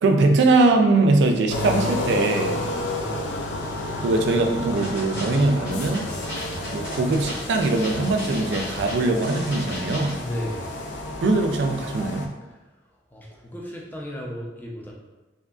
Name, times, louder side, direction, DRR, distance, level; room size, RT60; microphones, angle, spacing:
voice 1, 0.0-2.6 4.0-6.0 6.7-10.2 11.2-12.3, right 2 dB, 80° right, 4 dB, 0.3 m, -21 dB
sound 1, 1.5-12.3, left 2 dB, 85° left, 0.3 m, -31 dB
voice 2, 3.0-3.4 10.1-10.7 12.4-12.6 13.1-14.9, left 1 dB, 10° left, -2 dB, 0.4 m, -34 dB
sound 2, 4.7-10.2, left 1 dB, 50° left, 0.9 m, -36 dB
2.7 x 2.4 x 2.3 m, 1.1 s
head